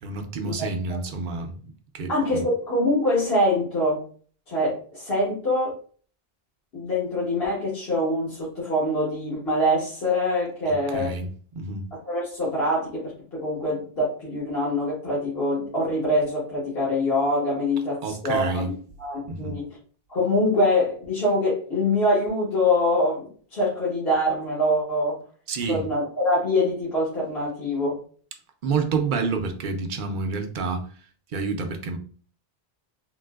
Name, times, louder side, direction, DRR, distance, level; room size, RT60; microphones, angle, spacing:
voice 1, 0.0-2.5 10.7-11.8 18.0-18.8 19.3-19.6 25.5-25.9 28.6-30.9 31.3-32.0, right 4 dB, 60° right, 5 dB, 0.7 m, -29 dB
voice 2, 2.1-4.1 4.5-5.8 6.7-11.1 12.1-18.6 19.0-19.6 20.1-25.2 25.7-28.0, left 1 dB, 70° left, -7 dB, 1.4 m, -24 dB
3.8 x 2.6 x 2.3 m, 0.43 s
omnidirectional pair, 1.0 m